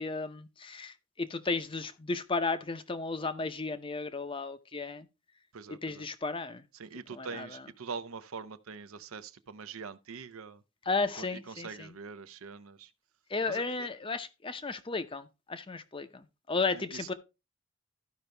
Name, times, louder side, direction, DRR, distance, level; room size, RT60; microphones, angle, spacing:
voice 1, 0.0-5.1 5.7-6.7 7.1-7.6 10.9-11.9 13.3-17.1, left 3 dB, 25° left, 0.6 m, -34 dB
voice 2, 5.5-6.0 6.7-10.6 11.2-12.9 13.5-13.9 16.7-17.1, right 5 dB, 75° right, 0.7 m, -43 dB
13.5 x 5.2 x 3.3 m
head